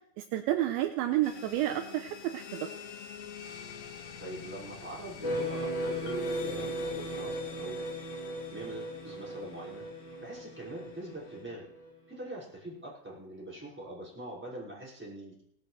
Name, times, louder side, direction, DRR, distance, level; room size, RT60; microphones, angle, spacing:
voice 1, 0.2-2.7, right 13 dB, 80° right, 6 dB, 2.9 m, -30 dB
sound 1, 1.2-11.4, left 7 dB, 90° left, 4.7 m, -47 dB
voice 2, 4.2-7.8 8.5-9.8 10.2-11.7 12.1-15.4, right 1 dB, ahead, -7 dB, 5.1 m, -43 dB
sound 2, 5.2-11.9, equal, 25° left, 2.9 m, -37 dB
Marimba xylophone, 6.1-7.8, left 1 dB, 70° left, 2.9 m, -45 dB
18.0 x 15.5 x 3.3 m, 0.70 s
omnidirectional pair, 5.6 m